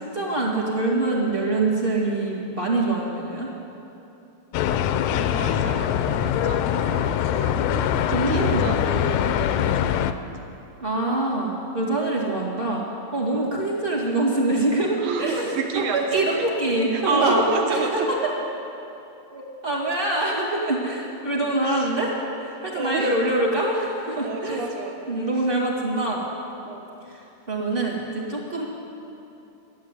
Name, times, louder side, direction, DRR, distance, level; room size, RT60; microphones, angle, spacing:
voice 1, 0.0-3.5 8.1-8.7 10.8-12.8 13.1-18.3 19.3-22.1 22.4-24.6 25.1-26.2 27.1-27.2 27.5-28.6, right 2 dB, 20° right, -5 dB, 1.7 m, -25 dB
sound 1, 4.5-10.1, left 10 dB, 80° left, 1.6 m, -23 dB
voice 2, 5.1-10.2 13.4-13.5 15.0-16.4 16.9-18.1 21.6-21.9 22.7-23.2 24.2-25.0 26.7-26.9, right 4 dB, 80° right, 2 dB, 2.7 m, -30 dB
13.0 x 8.3 x 9.6 m, 2.9 s
omnidirectional pair, 3.5 m